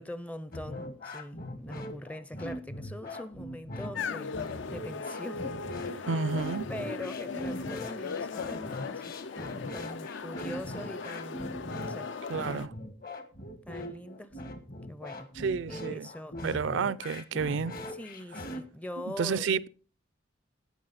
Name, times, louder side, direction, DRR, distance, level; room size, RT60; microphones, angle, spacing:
voice 1, 0.0-6.1 6.7-9.2 9.7-12.1 13.7-14.4 14.9-15.3 15.7-16.5 17.9-19.5, left 1 dB, 5° left, 0.5 m, -43 dB
sound 1, 0.5-18.6, left 1 dB, 50° left, 1.4 m, -40 dB
sound 2, 3.9-12.7, left 5 dB, 65° left, 0.5 m, -38 dB
voice 2, 6.1-6.7 12.3-12.7 15.4-16.1 16.4-17.7 19.1-19.7, right 5 dB, 65° right, 0.4 m, -30 dB
16.5 x 6.2 x 4.1 m
head